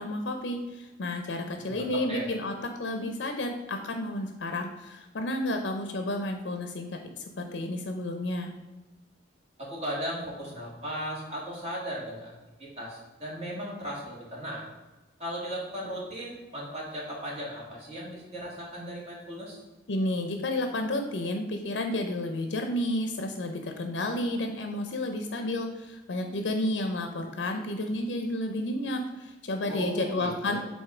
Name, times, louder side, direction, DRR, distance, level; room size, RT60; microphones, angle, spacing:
voice 1, 0.0-2.5 2.8-8.5 19.9-30.6, left 1 dB, 70° left, 5 dB, 0.6 m, -31 dB
voice 2, 1.6-2.3 9.6-12.3 12.6-14.7 15.2-19.6 29.7-30.6, equal, 35° right, -4 dB, 1.8 m, -37 dB
7.5 x 2.7 x 4.8 m, 1.2 s
head